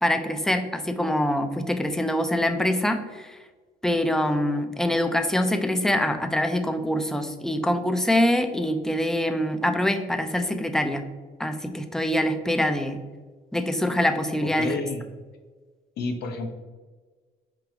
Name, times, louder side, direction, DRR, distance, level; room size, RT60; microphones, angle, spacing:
voice 1, 0.0-3.4 3.8-11.0 11.4-13.0 13.5-14.8, left 1 dB, 5° left, 6 dB, 0.4 m, -24 dB
voice 2, 14.4-15.0 16.0-16.5, left 3 dB, 75° left, 3 dB, 0.8 m, -30 dB
4.7 x 3.8 x 2.9 m, 1.4 s
cardioid pair, 110°, 17 cm